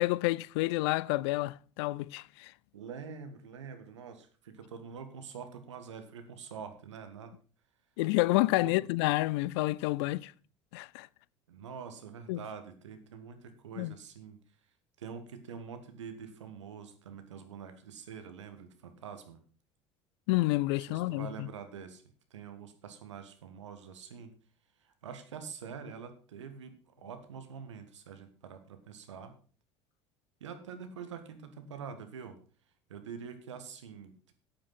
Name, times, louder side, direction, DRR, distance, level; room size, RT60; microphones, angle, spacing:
voice 1, 0.0-2.5 8.0-10.3 10.7-11.1 12.3-12.4 13.8-13.9 20.3-21.5, left 20 dB, 65° left, 0.4 m, -29 dB
voice 2, 2.7-7.3 8.6-8.8 11.5-14.4 15.0-19.4 20.9-22.0 22.3-24.3 24.8-29.3 30.4-32.4 32.9-34.3, right 6 dB, 80° right, 1.6 m, -45 dB
8.9 x 8.8 x 6.0 m
hypercardioid pair, 65°, 15 cm